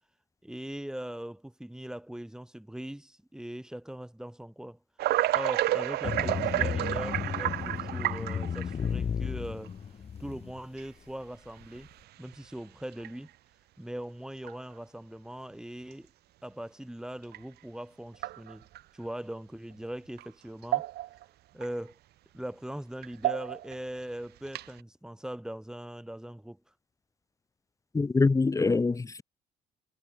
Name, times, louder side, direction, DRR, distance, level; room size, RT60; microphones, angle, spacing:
voice 1, 0.4-4.8 5.3-9.7 10.2-11.9 12.2-13.3 13.8-16.1 16.4-18.7 18.9-20.9 21.5-22.0 22.3-26.6, right 1 dB, 5° right, 5.2 m, -40 dB
sound 1, 5.0-8.9 9.6-9.7 10.8-10.9 11.6-11.9 12.3-12.4 12.9-13.1 14.4-14.5 17.3-17.4 18.1-18.8 20.2-20.3 20.6-21.2 21.6-21.7 23.0-23.8 24.5-24.8, right 15 dB, 75° right, 2.0 m, -30 dB
sound 2, 6.0-10.6, left 7 dB, 35° left, 2.0 m, -34 dB
voice 2, 27.9-29.2, left 3 dB, 20° left, 1.3 m, -24 dB
cardioid pair, 110°, 17 cm